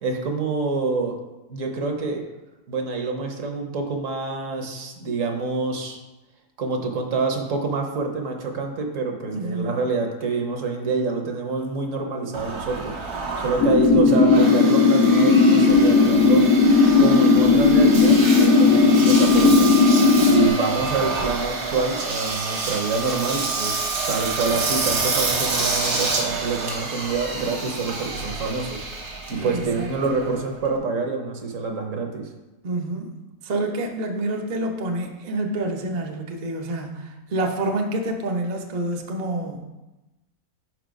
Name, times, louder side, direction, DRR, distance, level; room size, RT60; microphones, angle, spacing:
voice 1, 0.0-1.2 1.5-2.2 2.7-6.0 6.6-12.9 13.4-16.4 17.0-19.7 20.2-28.8 29.3-32.2, right 4 dB, 60° right, 3 dB, 1.2 m, -26 dB
voice 2, 9.3-9.8 13.9-14.1 29.4-30.2 32.6-33.2 33.4-39.7, right 2 dB, 45° right, 1 dB, 0.5 m, -28 dB
Engine, 12.3-30.8, right 4 dB, 90° right, 1.6 m, -28 dB
sound 1, 13.6-20.5, left 4 dB, 70° left, 1.1 m, -16 dB
5.3 x 4.7 x 5.1 m, 1.0 s
omnidirectional pair, 1.6 m